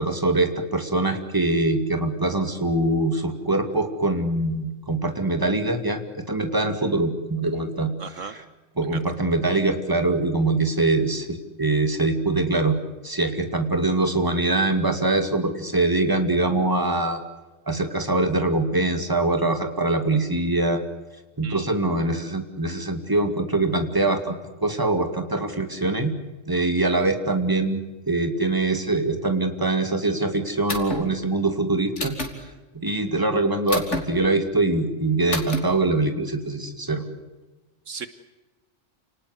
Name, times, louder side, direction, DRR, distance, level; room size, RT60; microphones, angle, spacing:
voice 1, 0.0-7.9 8.8-12.8 13.0-17.2 17.7-20.8 21.4-24.3 24.6-26.1 26.5-27.8 28.1-32.2 32.7-37.0, right 2 dB, 15° right, 6 dB, 2.6 m, -23 dB
voice 2, 8.0-8.3 8.9-9.0 21.4-21.7 37.9-38.1, right 6 dB, 70° right, 11 dB, 1.5 m, -36 dB
sound 1, 30.7-31.0 32.0-32.3 33.7-34.0 35.3-35.6, left 2 dB, 60° left, 3.6 m, -28 dB
29.5 x 19.0 x 8.1 m, 1.2 s
omnidirectional pair, 1.4 m